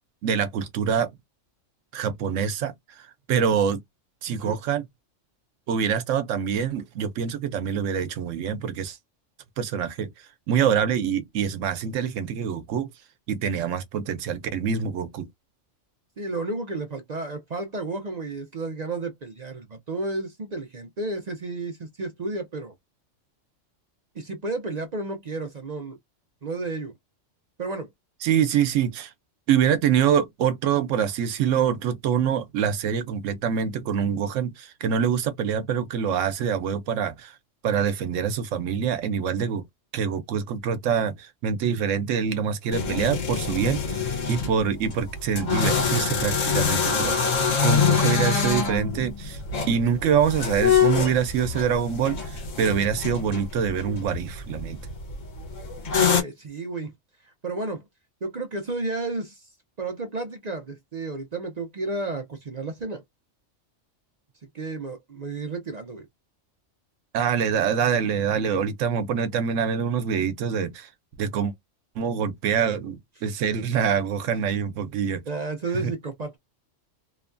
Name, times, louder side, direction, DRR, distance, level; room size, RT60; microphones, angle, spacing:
voice 1, 0.2-1.1 1.9-2.7 3.3-3.8 4.2-4.8 5.7-9.0 9.6-10.1 10.5-12.9 13.3-15.3 28.2-29.1 29.5-37.3 37.6-39.6 39.9-47.2 47.6-49.4 49.7-54.8 67.1-70.9 71.2-71.5 72.0-75.2 75.8-75.9, right 7 dB, 85° right, 1.0 m, -25 dB
voice 2, 16.2-22.7 24.2-26.0 26.4-26.9 27.6-27.9 56.0-56.9 57.2-57.9 58.2-59.5 59.8-63.0 64.5-66.1 73.7-73.8 75.3-76.4, right 3 dB, 50° right, 0.5 m, -32 dB
sound 1, 42.7-56.2, left 6 dB, 85° left, 1.3 m, -25 dB
2.9 x 2.2 x 2.4 m
omnidirectional pair, 1.3 m